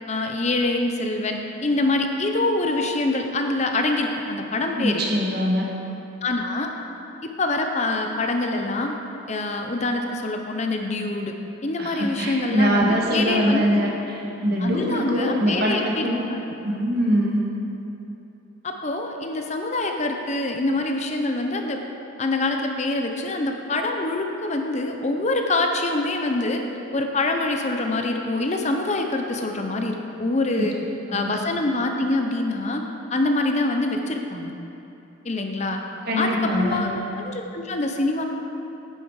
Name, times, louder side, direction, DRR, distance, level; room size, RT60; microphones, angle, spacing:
voice 1, 0.1-5.0 6.2-6.7 7.4-9.0 9.3-11.3 11.6-13.9 14.6-16.4 18.6-21.8 22.2-26.6 26.9-30.7 31.1-32.8 33.1-34.5 35.2-35.8 36.2-36.3 36.6-38.2, left 2 dB, 35° left, 4 dB, 0.7 m, -25 dB
voice 2, 4.7-5.7 11.8-16.2 16.6-17.4 30.5-30.6 31.1-31.3 36.1-36.8, equal, 50° right, -2 dB, 1.6 m, -23 dB
10.0 x 9.2 x 4.8 m, 3.0 s
head